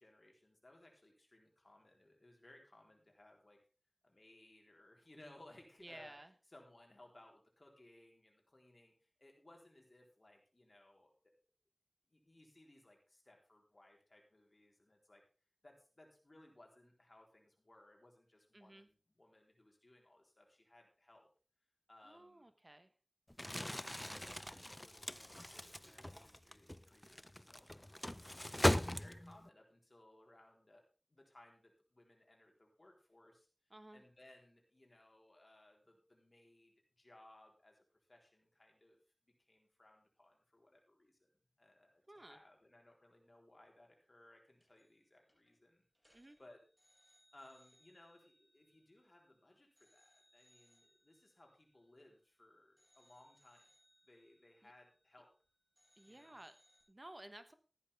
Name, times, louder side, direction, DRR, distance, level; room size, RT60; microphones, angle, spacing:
voice 1, 0.0-3.6 4.0-6.2 6.5-11.3 12.1-15.2 15.6-21.3 21.9-22.5 23.4-30.8 31.1-41.3 41.6-46.6 47.1-53.7 54.0-55.3 56.1-56.4, left 1 dB, 60° left, 1 dB, 4.0 m, -64 dB
voice 2, 5.8-6.3 18.5-18.9 22.0-22.9 33.7-34.0 42.1-42.4 46.1-46.4 54.6-54.7 56.0-56.6 56.9-57.5, right 1 dB, 40° right, 10 dB, 1.2 m, -55 dB
Crumpling crinkling, 23.3-29.5, left 1 dB, 25° left, 0.5 m, -39 dB
sound 1, 44.6-45.0 45.3-45.5 46.0-49.3 49.8-52.4 52.8-55.4 55.8-56.8, equal, ahead, 7.8 m, -73 dB
14.0 x 11.5 x 3.6 m, 0.35 s
wide cardioid pair, 45°, 0 cm